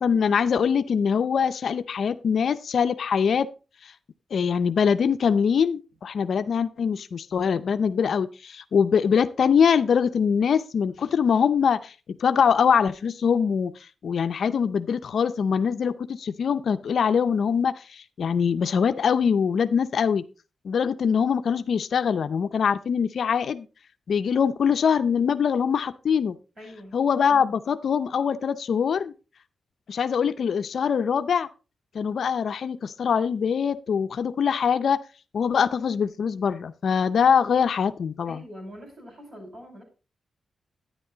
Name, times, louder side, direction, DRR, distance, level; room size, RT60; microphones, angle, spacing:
voice 1, 0.0-3.5 3.8-3.9 4.3-13.7 14.0-20.2 20.6-23.7 24.1-26.4 26.9-29.1 29.9-31.5 31.9-35.0 35.3-38.4, left 7 dB, 60° left, 10 dB, 0.5 m, -23 dB
voice 2, 26.6-27.0 38.3-39.8, equal, 30° right, 3 dB, 5.3 m, -43 dB
11.0 x 10.0 x 3.9 m, 0.32 s
wide cardioid pair, 155°, 0 cm